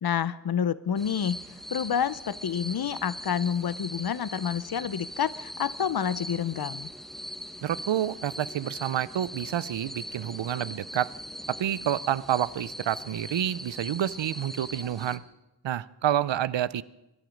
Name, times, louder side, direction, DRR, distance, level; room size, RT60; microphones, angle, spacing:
voice 1, 0.0-1.4 1.7-6.9, left 8 dB, 60° left, 17 dB, 0.7 m, -28 dB
sound 1, 1.0-15.2, equal, ahead, 1.1 m, -41 dB
voice 2, 7.6-11.1 11.5-15.2 15.6-16.8, right 11 dB, 80° right, 19 dB, 0.5 m, -28 dB
23.0 x 11.0 x 5.1 m, 0.97 s
wide cardioid pair, 55°, 43 cm